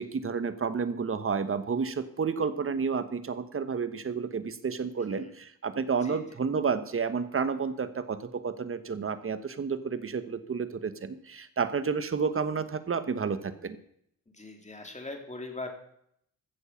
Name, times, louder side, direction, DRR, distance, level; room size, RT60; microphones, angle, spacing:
voice 1, 0.0-13.8, right 5 dB, 40° right, 12 dB, 1.2 m, -31 dB
voice 2, 14.3-15.7, left 2 dB, 20° left, 3 dB, 3.0 m, -40 dB
15.5 x 6.8 x 5.8 m, 0.70 s
cardioid pair, 70°, 34 cm